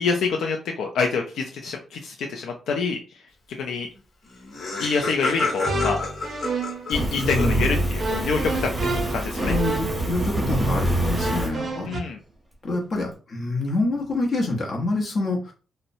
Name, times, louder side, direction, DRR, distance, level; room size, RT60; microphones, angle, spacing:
voice 1, 0.0-3.0 3.6-3.9 4.8-6.0 6.9-9.5 11.9-12.2, left 5 dB, 80° left, 2 dB, 0.4 m, -26 dB
Laughter, 4.0-4.1 4.2-7.9, left 3 dB, 60° left, 1.2 m, -30 dB
sound 1, 5.4-6.9 7.2-12.0, right 1 dB, 35° right, 0.5 m, -27 dB
Fire, 6.9-11.5, right 1 dB, 5° right, 0.9 m, -28 dB
voice 2, 7.2-7.7 9.4-11.9 12.6-15.5, left 2 dB, 45° left, 0 dB, 0.8 m, -26 dB
2.8 x 2.0 x 2.6 m, 0.36 s
cardioid pair, 130°, 0 cm